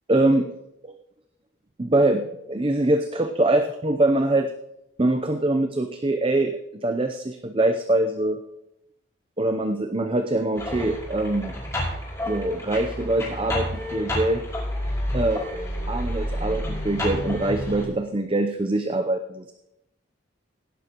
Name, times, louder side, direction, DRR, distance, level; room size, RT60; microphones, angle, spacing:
voice 1, 0.1-0.4 0.8-0.9 1.8-2.2 2.5-4.5 5.0-8.4 9.4-11.6 12.3-14.4 15.1-15.4 15.9-19.5, right 2 dB, 30° right, 6 dB, 0.6 m, -23 dB
sound 1, 10.6-17.9, equal, 15° left, 5.2 m, -29 dB
17.0 x 11.5 x 3.0 m, 0.86 s
head